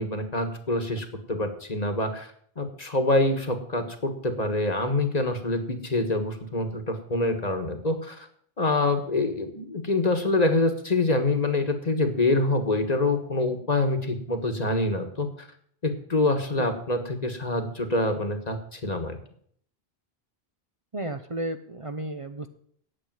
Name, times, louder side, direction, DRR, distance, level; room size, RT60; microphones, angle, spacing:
voice 1, 0.0-2.3 2.6-8.3 8.6-15.5 15.8-19.2, left 2 dB, 40° left, 7 dB, 1.5 m, -26 dB
voice 2, 20.9-22.5, right 1 dB, 35° right, 6 dB, 0.8 m, -33 dB
8.9 x 8.4 x 9.2 m, 0.63 s
omnidirectional pair, 1.1 m